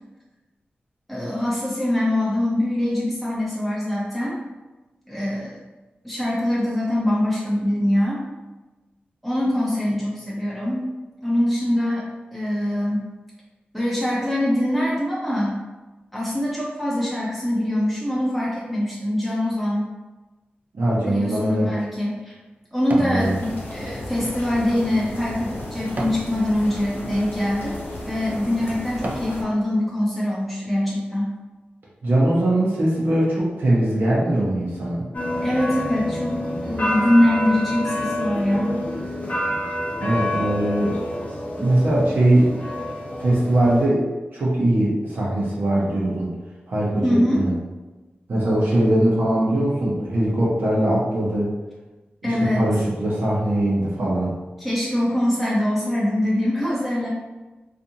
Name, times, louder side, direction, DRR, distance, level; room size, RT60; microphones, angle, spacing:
voice 1, 1.1-4.4 5.1-5.6 6.0-8.2 9.2-10.9 11.2-13.0 13.7-15.6 16.1-19.9 21.0-22.3 22.7-27.8 28.1-31.3 35.4-38.8 47.0-47.4 52.2-52.6 54.6-57.1, left 1 dB, ahead, -7 dB, 0.6 m, -23 dB
voice 2, 20.7-21.7 23.0-23.3 32.0-35.0 40.0-40.9 41.6-42.5 43.2-44.0 44.3-46.3 46.7-47.5 48.3-51.5 52.2-54.3, right 1 dB, 75° right, -7 dB, 0.7 m, -21 dB
sound 1, 21.4-23.2 23.7-26.3 26.9-27.2 27.8-28.0 28.5-29.4 29.9-30.0, right 1 dB, 45° right, 0.4 m, -36 dB
sound 2, 23.2-29.4, left 1 dB, 85° left, 0.7 m, -34 dB
sound 3, 35.1-43.9, left 1 dB, 45° left, 0.6 m, -28 dB
2.6 x 2.4 x 2.7 m, 1.1 s
wide cardioid pair, 70°, 4 cm